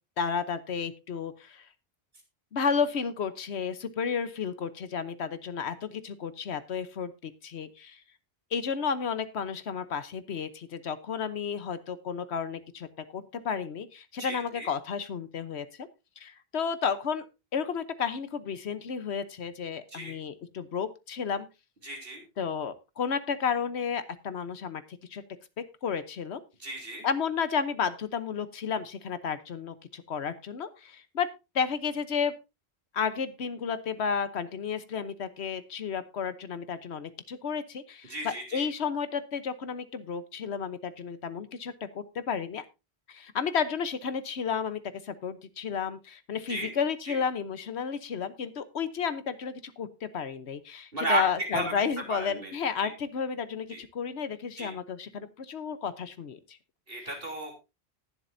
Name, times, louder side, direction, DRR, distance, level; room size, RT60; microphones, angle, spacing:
voice 1, 0.2-1.7 2.5-8.0 8.5-12.9 13.1-15.9 16.2-17.3 17.5-21.5 22.4-25.2 25.8-26.4 27.0-31.3 31.5-32.3 32.9-42.6 43.1-56.6, left 6 dB, 90° left, 12 dB, 1.2 m, -32 dB
voice 2, 14.2-14.7 19.9-20.2 21.8-22.2 26.6-27.0 38.1-38.6 46.5-46.7 47.1-47.2 50.9-51.2 51.5-51.7 52.1-52.5 52.8-52.9 53.7-53.8 54.6-54.7 56.9-57.6, right 2 dB, 60° right, 2 dB, 3.5 m, -33 dB
19.0 x 7.6 x 2.7 m, 0.26 s
omnidirectional pair, 1.1 m